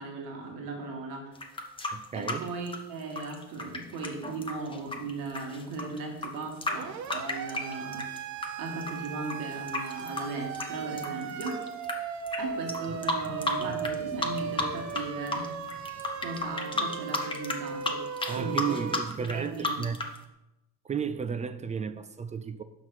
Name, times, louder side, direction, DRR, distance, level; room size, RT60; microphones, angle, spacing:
voice 1, 0.0-1.3 2.1-8.1 8.6-11.6 12.4-15.6 16.2-18.8 19.3-19.9, right 3 dB, 70° right, 1.8 m, -37 dB
sound 1, 1.3-8.5 8.8-11.9 12.3-12.4 12.7-13.9 14.2-15.0 15.3-20.2, left 2 dB, 15° left, 0.9 m, -32 dB
voice 2, 1.9-2.5 18.3-20.0 20.8-22.6, right 6 dB, 20° right, 0.3 m, -33 dB
Siren, 6.7-19.0, right 7 dB, 50° right, 0.7 m, -37 dB
Wild animals, 12.2-17.2, left 3 dB, 45° left, 1.0 m, -48 dB
5.9 x 5.8 x 4.7 m
supercardioid pair, 95°, 36 cm